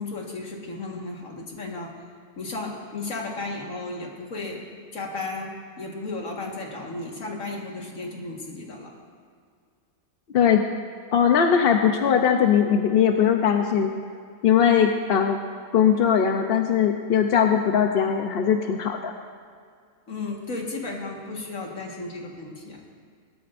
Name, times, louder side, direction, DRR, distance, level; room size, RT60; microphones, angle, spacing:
voice 1, 0.0-2.0 2.4-4.6 4.9-8.9 20.1-22.8, left 3 dB, 70° left, -1 dB, 2.1 m, -34 dB
voice 2, 11.1-13.9 14.4-15.4 15.7-19.1, left 8 dB, 55° left, 4 dB, 0.7 m, -20 dB
20.0 x 13.0 x 2.6 m, 2.1 s
omnidirectional pair, 1.4 m